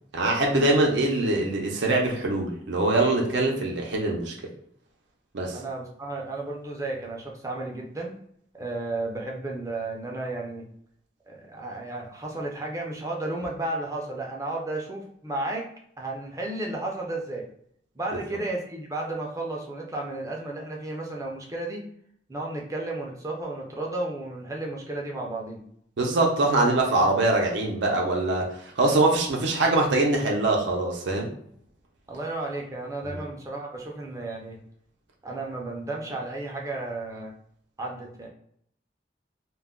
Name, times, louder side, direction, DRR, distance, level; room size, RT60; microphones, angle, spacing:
voice 1, 0.1-4.3 5.3-5.6 26.0-31.3, right 2 dB, 85° right, 0 dB, 0.5 m, -23 dB
voice 2, 5.5-8.2 8.5-10.7 11.3-15.7 16.0-17.4 17.9-21.8 22.3-25.6 28.9-29.0 32.1-34.6 35.2-37.3 37.8-38.3, right 2 dB, 20° right, -1 dB, 0.4 m, -33 dB
2.3 x 2.1 x 3.6 m, 0.68 s
head